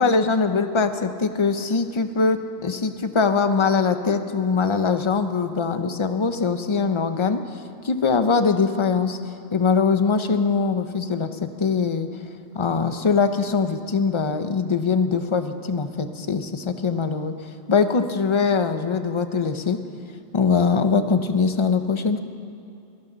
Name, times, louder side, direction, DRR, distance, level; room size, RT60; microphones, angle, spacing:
voice 1, 0.0-9.2 9.5-12.1 12.5-19.8 20.3-22.2, left 5 dB, 30° left, 9 dB, 0.7 m, -22 dB
23.0 x 15.5 x 4.0 m, 2.7 s
omnidirectional pair, 1.1 m